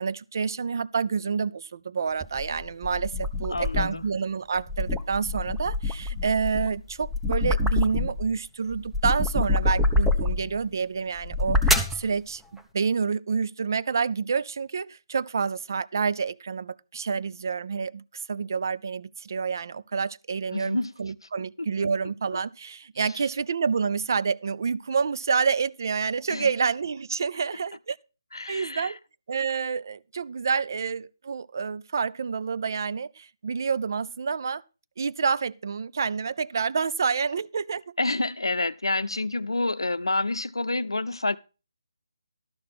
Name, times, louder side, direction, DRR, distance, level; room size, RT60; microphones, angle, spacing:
voice 1, 0.0-28.0 28.5-29.0 29.3-34.6 35.0-37.9, right 5 dB, 50° right, 0.5 m, -28 dB
sound 1, 2.2-4.1 4.6-8.3 8.7-10.6 11.2-12.0, left 2 dB, ahead, 0.7 m, -26 dB
voice 2, 3.5-4.1 20.5-20.9 21.6-21.7 26.3-26.5 28.3-28.9 38.0-41.4, left 2 dB, 80° left, 0.6 m, -28 dB
12.0 x 6.6 x 5.7 m
figure-of-eight pair, 150°, 2 cm